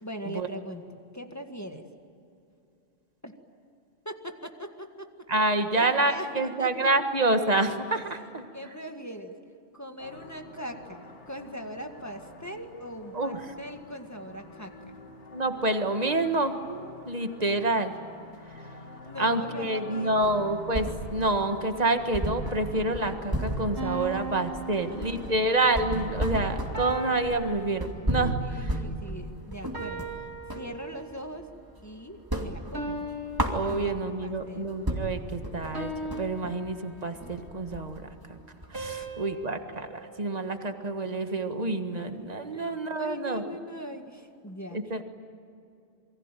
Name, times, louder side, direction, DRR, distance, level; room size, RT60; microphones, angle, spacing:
voice 1, 0.0-1.8 3.2-3.3 4.1-5.1 5.7-6.7 8.5-9.3 9.7-15.0 19.0-20.4 24.0-24.2 28.5-30.3 30.5-31.5 31.8-33.1 33.7-33.9 34.2-34.7 39.0-39.2 42.5-42.7 43.0-44.8, equal, 15° left, 5 dB, 1.8 m, -41 dB
voice 2, 5.3-8.4 13.1-13.5 15.3-17.9 19.2-28.8 33.5-35.9 36.2-38.4 38.7-43.4 44.7-45.0, right 2 dB, 35° right, 7 dB, 1.8 m, -28 dB
sound 1, 10.0-27.3, left 3 dB, 85° left, 2.9 m, -46 dB
sound 2, 20.2-21.4 21.7-21.8 22.1-30.7 31.1-31.9 32.1-34.2 34.6-34.7 34.9-39.0, right 1 dB, 20° right, 2.6 m, -33 dB
sound 3, 23.8-25.7 26.7-28.4 29.7-31.3 32.7-34.4 35.7-37.4 38.7-41.1, right 1 dB, 70° right, 4.6 m, -39 dB
28.0 x 23.0 x 9.1 m, 2.6 s
omnidirectional pair, 1.2 m